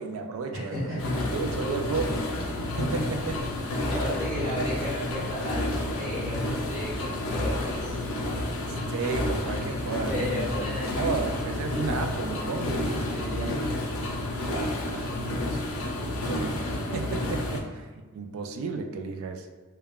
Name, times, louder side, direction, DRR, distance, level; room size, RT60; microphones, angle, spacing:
voice 1, 0.0-1.0 1.3-2.1 2.8-3.6 8.9-10.6 11.0-13.6 13.8-13.9 14.4-19.5, right 4 dB, 70° right, 6 dB, 0.3 m, -33 dB
voice 2, 0.5-1.4 3.8-8.0 10.1-11.3 13.1-13.6, equal, 20° right, -12 dB, 1.0 m, -34 dB
sound 1, 1.0-17.6, left 1 dB, 70° left, 0.4 m, -30 dB
2.3 x 2.2 x 3.4 m, 1.4 s
head